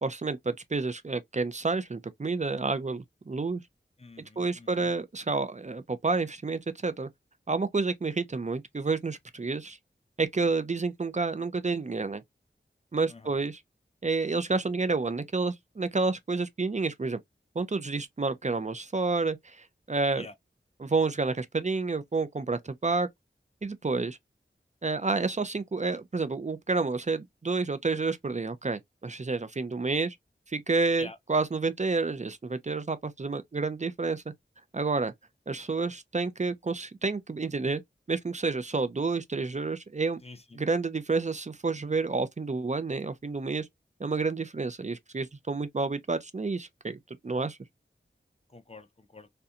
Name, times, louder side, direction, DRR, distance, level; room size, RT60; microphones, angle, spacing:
voice 1, 0.0-3.6 4.4-7.1 7.5-9.8 10.2-12.2 12.9-13.6 14.0-17.2 17.6-20.3 20.8-23.1 23.6-24.2 24.8-30.2 30.5-34.2 34.7-35.1 35.5-37.8 38.1-40.2 40.6-43.7 44.0-47.6, right 3 dB, 35° right, 0.4 m, -29 dB
voice 2, 4.0-4.9 13.1-13.4 20.1-20.4 31.0-31.2 40.2-40.6 48.5-49.3, left 3 dB, 30° left, 0.5 m, -47 dB
2.8 x 2.2 x 2.4 m
wide cardioid pair, 50°, 20 cm